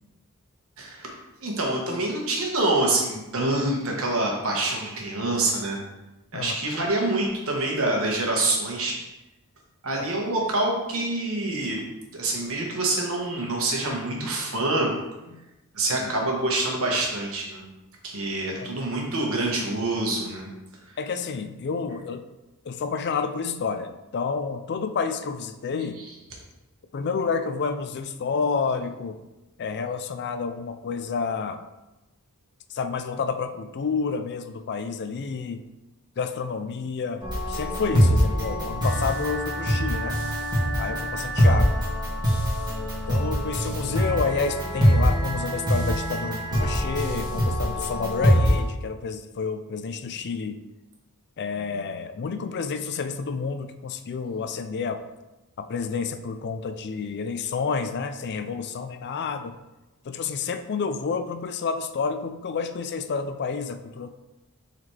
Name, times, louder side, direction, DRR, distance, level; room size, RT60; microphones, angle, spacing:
voice 1, 0.8-1.1 1.4-5.8 6.3-9.0 9.8-11.8 12.1-14.9 15.7-17.6 18.0-20.5 20.9-21.0, right 2 dB, 65° right, -1 dB, 1.4 m, -26 dB
voice 2, 21.0-22.2 22.6-26.0 26.9-29.2 29.6-31.6 32.7-35.6 36.2-40.2 40.8-41.8 43.1-50.6 51.4-55.0 55.6-59.6 60.0-64.1, left 5 dB, 50° left, 8 dB, 0.4 m, -29 dB
sound 1, 37.2-48.6, equal, 20° right, 2.0 m, -23 dB
7.1 x 4.1 x 3.3 m, 1.0 s
head